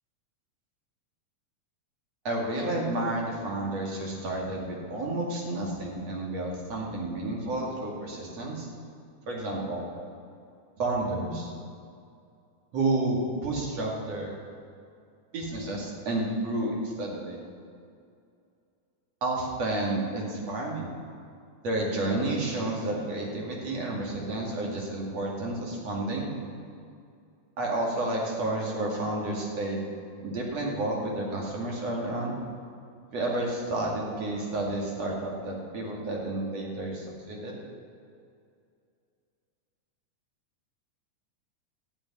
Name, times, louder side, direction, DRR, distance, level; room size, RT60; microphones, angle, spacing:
voice 1, 2.2-8.7 9.3-9.8 10.8-11.5 12.7-14.3 15.3-17.4 19.2-20.9 21.6-26.3 27.6-29.9 30.2-32.4 33.1-37.6, right 2 dB, 55° right, -2 dB, 3.4 m, -30 dB
13.0 x 8.8 x 9.8 m, 2.4 s
omnidirectional pair, 3.5 m